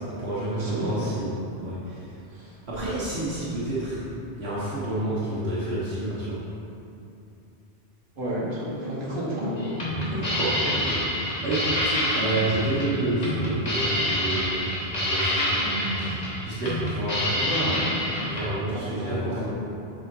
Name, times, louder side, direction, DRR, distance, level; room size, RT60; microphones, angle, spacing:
voice 1, 0.0-2.2 2.7-4.0 4.4-6.4 10.3-10.6 11.4-17.5 18.2-19.5, right 1 dB, 80° right, -9 dB, 1.6 m, -29 dB
voice 2, 0.5-1.1 2.3-2.6 8.2-9.7 10.0-10.4 10.8-10.9 17.4-18.0 18.7-19.5, equal, 55° right, -8 dB, 1.8 m, -31 dB
sound 1, 9.6-18.5, left 1 dB, 40° left, 1.4 m, -27 dB
6.8 x 5.5 x 4.5 m, 2.8 s
omnidirectional pair, 1.1 m